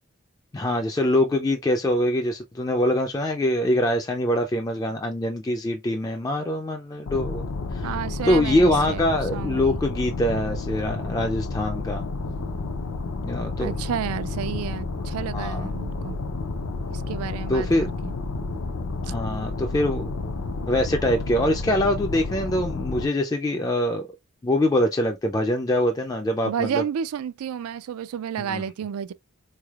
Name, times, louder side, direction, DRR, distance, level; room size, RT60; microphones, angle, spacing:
voice 1, 0.5-7.5 7.7-7.9 8.2-12.1 13.2-13.7 15.3-15.7 17.5-17.9 19.0-20.1 20.7-24.1 24.4-26.8 28.4-28.6, left 1 dB, 15° left, 0.3 m, -24 dB
sound 1, 7.1-23.1, left 3 dB, 80° left, 0.5 m, -31 dB
voice 2, 7.8-9.1 9.3-9.8 13.6-16.2 16.9-18.1 26.5-29.1, right 8 dB, 85° right, 0.3 m, -31 dB
3.5 x 3.2 x 2.3 m
head